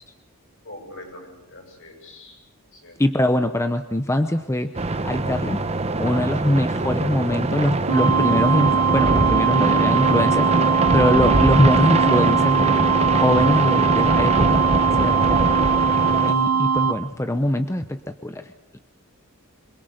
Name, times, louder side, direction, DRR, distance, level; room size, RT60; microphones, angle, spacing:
voice 1, 0.6-2.4 2.7-3.5, left 1 dB, 60° left, 2 dB, 7.9 m, -43 dB
voice 2, 3.0-4.7 5.0-5.6 6.0-14.6 15.0-15.4 16.3-18.4, left 1 dB, 15° left, 8 dB, 0.8 m, -22 dB
sound 1, 4.7-16.3, right 2 dB, 30° right, 0.9 m, -22 dB
sound 2, 7.9-16.9, right 5 dB, 90° right, 1.3 m, -20 dB
26.0 x 21.5 x 6.5 m, 0.99 s
head